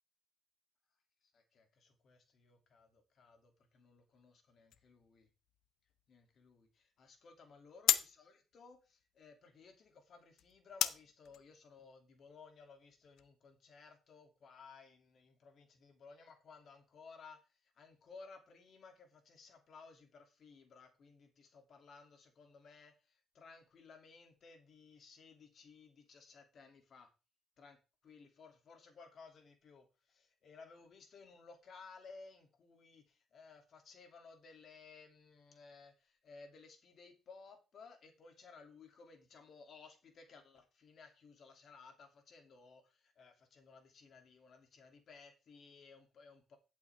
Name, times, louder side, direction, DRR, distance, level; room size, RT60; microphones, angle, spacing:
voice 1, 1.3-5.3 6.1-27.1 27.6-27.8 28.0-46.6, left 4 dB, 60° left, 4 dB, 2.7 m, -58 dB
sound 1, 4.7-13.3, left 12 dB, 85° left, 0.8 m, -41 dB
11.5 x 8.3 x 3.5 m, 0.30 s
cardioid pair, 90°, 0 cm